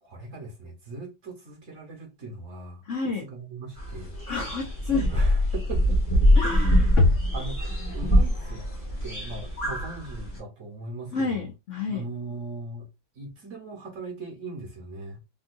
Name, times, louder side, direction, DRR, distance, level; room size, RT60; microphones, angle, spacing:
voice 1, 0.0-2.8 3.2-4.2 4.9-6.0 6.4-6.7 7.3-8.7 9.0-11.5 11.9-12.9 13.1-15.2, right 3 dB, 50° right, 1.2 m, -39 dB
voice 2, 2.9-3.2 4.3-5.1 6.3-7.1 11.1-12.0, left 4 dB, 65° left, 0.7 m, -27 dB
sound 1, 3.8-10.4, equal, 20° left, 1.1 m, -24 dB
3.8 x 2.6 x 2.5 m
omnidirectional pair, 2.0 m